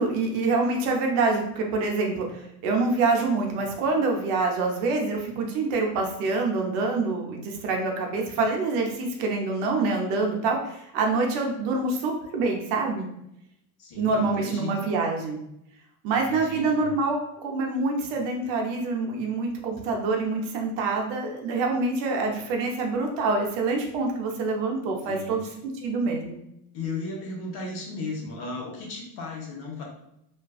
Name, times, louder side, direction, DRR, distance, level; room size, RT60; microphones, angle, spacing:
voice 1, 0.0-13.1 14.0-15.4 16.0-25.5 25.8-26.4, right 3 dB, 70° right, 1 dB, 0.8 m, -26 dB
voice 2, 13.8-14.9 16.3-16.9 25.0-25.5 26.7-29.8, left 3 dB, 50° left, 0 dB, 0.9 m, -35 dB
2.5 x 2.3 x 2.3 m, 0.80 s
supercardioid pair, 95°, 49 cm